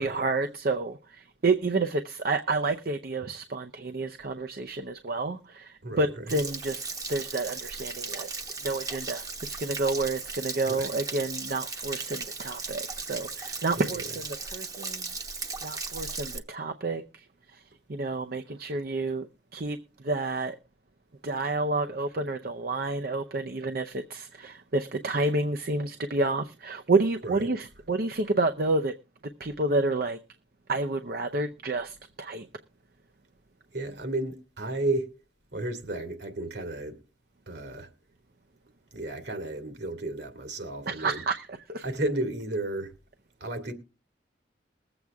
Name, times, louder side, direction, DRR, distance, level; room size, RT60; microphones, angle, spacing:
voice 1, 0.0-8.3 8.6-15.1 15.6-17.6 17.9-19.3 19.5-20.6 21.2-28.9 29.4-30.2 30.7-32.5 40.9-41.8, right 3 dB, 55° right, 0.7 m, -29 dB
voice 2, 5.8-6.4 10.7-10.9 13.8-14.0 27.2-27.5 33.7-35.2 35.5-37.0 37.5-37.9 38.9-41.2 41.8-42.9 43.4-43.7, right 2 dB, 70° right, 2.3 m, -33 dB
Stream / Splash splatter / Trickle dribble, 6.3-16.4, right 4 dB, 20° right, 0.9 m, -37 dB
21.0 x 7.9 x 3.5 m
head